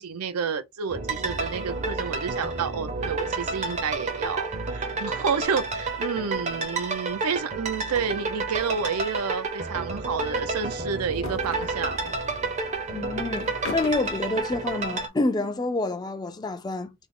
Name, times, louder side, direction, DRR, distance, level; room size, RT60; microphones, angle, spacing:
voice 1, 0.0-12.1, right 6 dB, 90° right, 0.5 m, -30 dB
sound 1, 0.9-15.1, right 3 dB, 30° right, 0.5 m, -30 dB
sound 2, 8.6-8.8 9.1-9.2 11.0-12.2 13.4-14.2, left 4 dB, 65° left, 0.8 m, -38 dB
voice 2, 12.9-16.9, left 2 dB, 20° left, 0.3 m, -28 dB
3.5 x 2.0 x 3.6 m
head